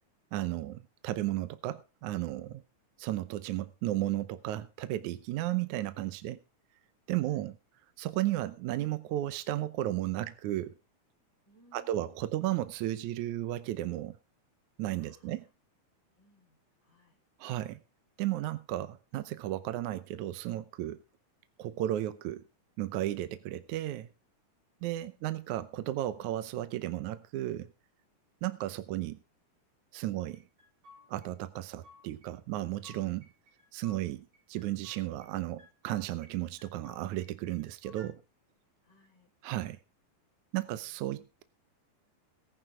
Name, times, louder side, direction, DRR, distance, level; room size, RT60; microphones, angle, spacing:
voice 1, 0.3-2.6 3.0-6.4 7.1-7.5 8.0-10.7 11.7-14.2 14.8-15.5 17.4-17.8 18.2-21.0 21.6-22.4 22.8-24.1 24.8-27.7 28.4-29.2 29.9-30.4 31.1-33.3 33.7-38.2 39.4-39.8 40.5-41.4, right 14 dB, 75° right, 2.1 m, -34 dB
voice 2, 7.2-7.5 11.4-12.3 15.0-15.5 16.2-17.2 25.0-25.6 38.8-39.3 40.6-40.9, left 1 dB, 20° right, 4.0 m, -66 dB
sound 1, 30.3-31.3 31.6-32.3 32.6-34.0 34.3-35.3 35.6-36.3 36.6-38.1, left 2 dB, 50° right, 4.5 m, -58 dB
18.5 x 11.0 x 3.7 m
omnidirectional pair, 3.7 m